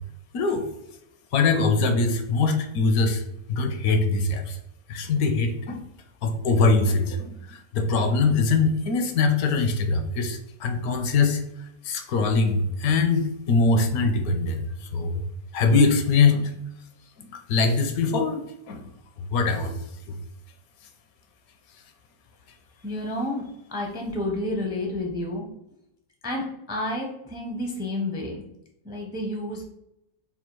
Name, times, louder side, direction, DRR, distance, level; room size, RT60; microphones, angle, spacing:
voice 1, 0.3-0.7 1.3-3.2 3.5-4.6 4.9-5.8 6.2-11.4 11.8-14.6 14.9-15.2 15.5-16.5 17.3-18.8 19.3-19.7 20.1-20.2, left 4 dB, 75° left, 6 dB, 1.0 m, -22 dB
voice 2, 22.8-25.5 26.2-28.4 28.8-29.6, left 1 dB, 5° right, 0 dB, 0.4 m, -30 dB
3.5 x 2.4 x 4.4 m, 0.82 s
omnidirectional pair, 1.6 m